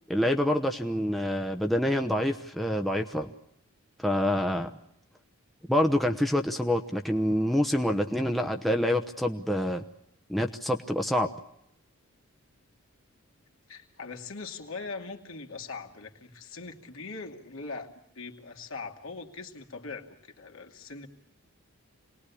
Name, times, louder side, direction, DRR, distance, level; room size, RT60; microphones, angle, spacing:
voice 1, 0.1-3.3 4.0-4.7 5.7-9.8 10.3-11.3, left 1 dB, ahead, 3 dB, 0.9 m, -26 dB
voice 2, 13.7-21.1, left 4 dB, 65° left, 2 dB, 2.6 m, -41 dB
27.5 x 20.0 x 8.5 m, 0.78 s
head